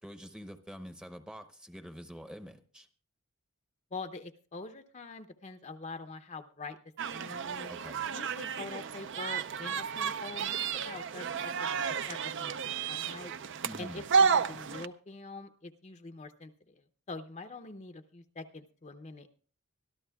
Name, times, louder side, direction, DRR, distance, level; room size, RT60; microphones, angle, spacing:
voice 1, 0.0-2.9 7.7-8.1 13.6-14.0, equal, 5° right, 7 dB, 0.8 m, -46 dB
voice 2, 3.9-6.8 7.0-7.7 8.1-11.7 12.1-13.3 13.8-16.7 17.1-19.3, left 3 dB, 30° left, 7 dB, 0.6 m, -44 dB
sound 1, 7.0-14.9, right 6 dB, 55° right, 0.5 m, -32 dB
24.5 x 13.0 x 2.3 m, 0.40 s
head